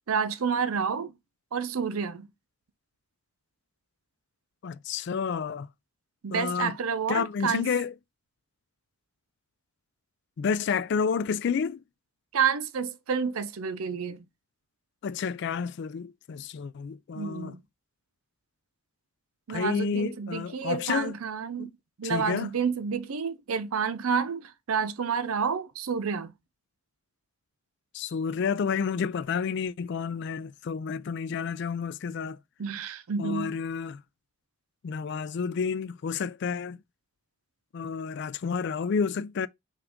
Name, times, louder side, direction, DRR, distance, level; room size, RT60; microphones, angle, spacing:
voice 1, 0.1-1.1 1.5-2.3 6.2-7.7 12.3-14.3 17.1-17.6 19.5-21.7 22.0-26.3 32.6-33.6, right 6 dB, 80° right, 0.5 m, -29 dB
voice 2, 4.6-5.7 6.3-6.7 7.1-7.9 10.4-11.8 15.0-17.5 19.5-21.1 21.6-21.7 22.0-22.5 27.9-32.4 33.2-34.0 34.8-36.8 37.7-39.5, left 6 dB, 55° left, 0.3 m, -30 dB
5.9 x 2.5 x 3.5 m
head